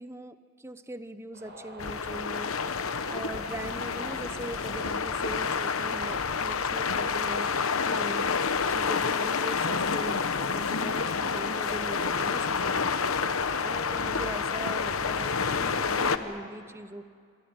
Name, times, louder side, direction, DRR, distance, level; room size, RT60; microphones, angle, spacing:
voice 1, 0.0-2.8 3.1-17.0, right 1 dB, 10° right, 11 dB, 0.8 m, -41 dB
sound 1, 1.3-16.3, equal, 50° right, 6.0 m, -45 dB
sound 2, 1.8-16.2, left 5 dB, 85° left, 1.0 m, -29 dB
26.0 x 19.5 x 9.6 m, 2.2 s
head